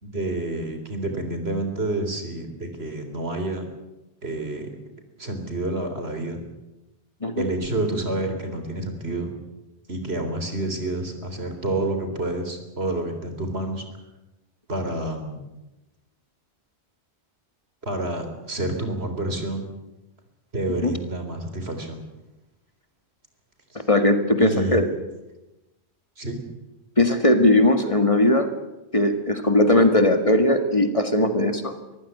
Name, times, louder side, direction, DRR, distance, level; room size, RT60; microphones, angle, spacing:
voice 1, 0.0-3.7 4.2-4.7 5.2-6.4 7.4-9.3 9.9-13.8 14.7-15.4 17.8-19.7 20.5-22.0 23.7-23.8 24.4-24.8 26.2-26.4, right 2 dB, 70° right, 6 dB, 4.1 m, -28 dB
voice 2, 23.9-24.9 27.0-28.5 28.9-31.7, left 1 dB, 30° left, 7 dB, 2.0 m, -19 dB
24.5 x 15.5 x 9.7 m, 0.99 s
omnidirectional pair, 1.1 m